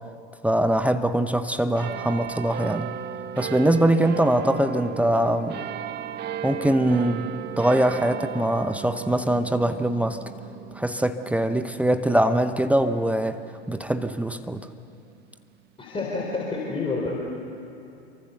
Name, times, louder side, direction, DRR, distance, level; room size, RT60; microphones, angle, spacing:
voice 1, 0.4-2.9 3.4-5.6 6.4-7.3 7.6-10.2 10.7-13.4 13.7-14.7, right 1 dB, 5° right, 9 dB, 0.8 m, -22 dB
sound 1, 1.7-14.6 15.3-15.4, right 9 dB, 30° right, 1.0 m, -36 dB
voice 2, 15.8-17.2, left 3 dB, 15° left, -2 dB, 3.9 m, -28 dB
27.0 x 24.0 x 6.8 m, 2.8 s
hypercardioid pair, 95°, 33 cm